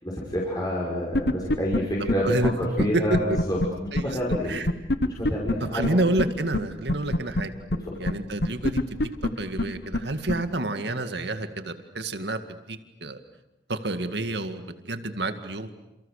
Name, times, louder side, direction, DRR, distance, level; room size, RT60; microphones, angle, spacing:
voice 1, 0.0-4.6 5.0-5.8 7.8-8.0, equal, 20° left, -4 dB, 6.1 m, -28 dB
sound 1, 1.1-1.8 2.1-2.2 2.4-2.5 2.8-2.9 3.1-3.7 4.0-4.1 4.3-4.4 4.7-5.5 5.8-5.9 6.2-6.3 6.5-6.6 6.9-7.4 7.7-7.8 8.1-8.2 8.4-9.3 9.6-9.7 9.9-10.0 10.3-10.4, left 1 dB, 60° left, 1.2 m, -23 dB
voice 2, 5.6-7.5 8.0-9.1 9.4-13.2 13.7-15.7, right 2 dB, 65° right, 8 dB, 2.1 m, -29 dB
29.5 x 29.0 x 6.7 m, 0.95 s
head